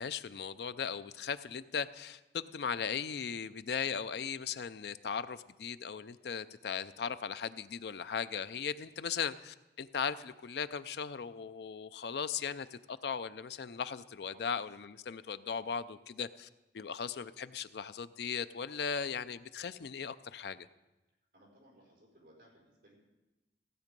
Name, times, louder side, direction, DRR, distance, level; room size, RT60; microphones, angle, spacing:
voice 1, 0.0-16.5 16.7-20.7, left 6 dB, 65° left, 14 dB, 0.4 m, -38 dB
voice 2, 21.3-23.0, right 1 dB, 50° right, -4 dB, 4.6 m, -61 dB
16.0 x 8.4 x 5.3 m, 1.0 s
head